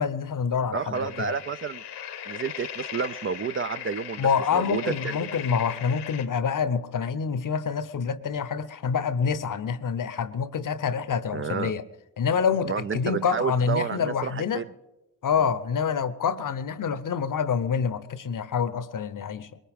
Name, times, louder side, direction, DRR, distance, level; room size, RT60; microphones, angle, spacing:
voice 1, 0.0-1.3 4.2-11.9 12.2-14.6 15.2-19.5, left 6 dB, 55° left, 0.8 m, -27 dB
voice 2, 0.7-1.8 2.3-5.2 11.3-11.7 12.6-14.7, right 6 dB, 35° right, 0.4 m, -30 dB
sound 1, 0.9-6.3, left 9 dB, 80° left, 1.2 m, -38 dB
21.0 x 19.0 x 3.6 m
supercardioid pair, 45°, 39 cm